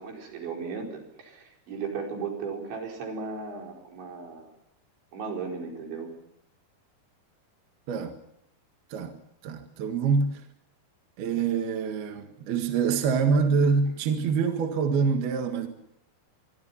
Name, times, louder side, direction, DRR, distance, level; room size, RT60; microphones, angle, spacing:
voice 1, 0.0-4.5 5.1-6.1, right 5 dB, 85° right, 7.1 m, -36 dB
voice 2, 7.9-8.2 8.9-9.2 9.4-10.4 11.2-15.7, right 5 dB, 65° right, 3.5 m, -25 dB
26.0 x 23.5 x 5.8 m
omnidirectional pair, 5.1 m